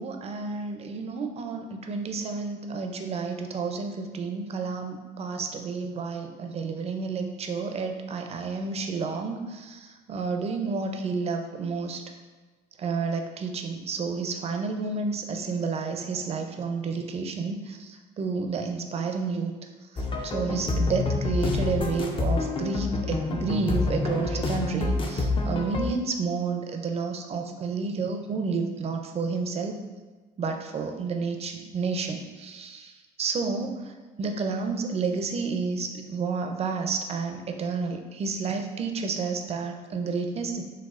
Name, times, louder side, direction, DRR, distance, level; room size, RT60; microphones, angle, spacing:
voice 1, 0.0-12.0 12.8-19.5 19.9-29.8 30.4-32.9 33.2-33.9 34.2-40.6, right 4 dB, 40° right, 4 dB, 0.4 m, -30 dB
sound 1, 20.0-25.9, left 3 dB, 30° left, 0.4 m, -27 dB
6.1 x 2.2 x 2.4 m, 1.3 s
cardioid pair, 110°, 17 cm